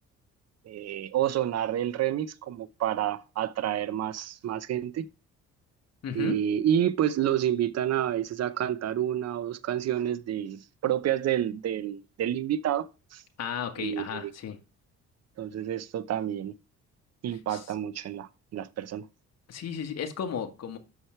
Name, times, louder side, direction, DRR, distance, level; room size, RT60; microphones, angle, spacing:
voice 1, 0.7-5.1 6.1-12.9 13.1-13.2 13.8-14.3 15.4-16.5 17.2-19.0, right 11 dB, 55° right, 0.8 m, -29 dB
voice 2, 6.0-6.4 13.4-14.6 17.5-17.6 19.5-20.8, left 7 dB, 55° left, 1.7 m, -34 dB
8.1 x 6.3 x 4.5 m
cardioid pair, 90°, 30 cm